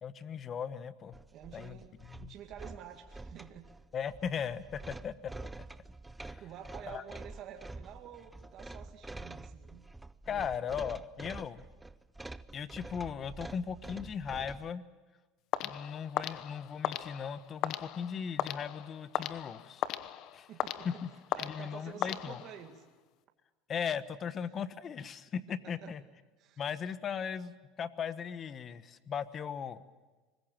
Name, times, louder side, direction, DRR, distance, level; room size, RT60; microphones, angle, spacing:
voice 1, 0.0-1.2 1.5-2.3 3.9-5.3 6.2-6.4 6.9-7.0 10.3-11.7 12.5-14.8 15.6-19.8 20.3-20.5 20.8-21.1 21.4-22.4 23.7-26.0 26.6-29.8, left 7 dB, 35° left, 13 dB, 1.2 m, -38 dB
sound 1, 1.1-14.7, right 2 dB, 10° right, 0.7 m, -47 dB
voice 2, 1.3-1.9 2.2-3.7 6.4-9.9 10.3-10.5 20.5-21.0 21.3-22.8 25.8-25.9 26.4-26.6, right 9 dB, 50° right, 3 dB, 2.3 m, -49 dB
sound 2, 15.5-22.8, left 12 dB, 55° left, 1.0 m, -38 dB
24.5 x 21.0 x 7.5 m, 1.3 s
supercardioid pair, 115°, 0 cm